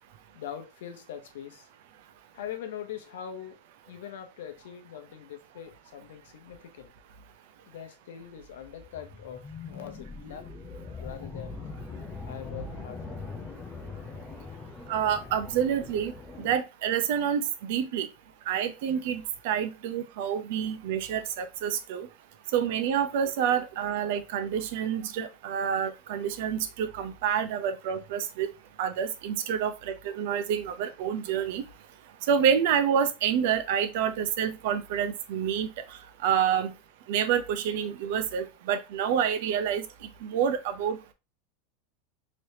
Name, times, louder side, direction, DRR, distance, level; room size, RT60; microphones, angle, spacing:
voice 1, 0.3-1.7 2.3-3.6 3.9-6.9 7.7-10.5 11.0-11.6 12.3-13.3, left 9 dB, 85° left, 0.8 m, -42 dB
sound 1, 8.3-16.6, left 4 dB, 15° left, 0.6 m, -42 dB
voice 2, 14.9-16.1 16.4-18.1 18.5-22.1 22.5-28.5 28.8-31.6 32.3-35.7 36.2-36.7 37.1-39.8 40.2-41.0, right 8 dB, 65° right, 0.6 m, -28 dB
3.3 x 3.0 x 2.7 m
supercardioid pair, 150°, 0 cm